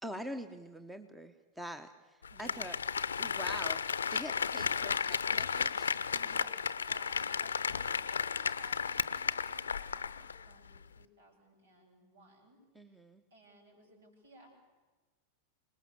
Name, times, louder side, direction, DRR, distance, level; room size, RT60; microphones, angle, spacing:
voice 1, 0.0-2.8 3.2-5.9 12.7-13.2, equal, 5° right, 9 dB, 1.2 m, -44 dB
Applause, 2.2-10.4 10.8-10.9, left 6 dB, 70° left, 0.7 m, -34 dB
voice 2, 2.3-2.7 6.1-12.6 13.3-14.7, right 1 dB, 65° right, 2 dB, 7.8 m, -58 dB
27.0 x 20.0 x 8.1 m, 1.3 s
figure-of-eight pair, 90°, 0 cm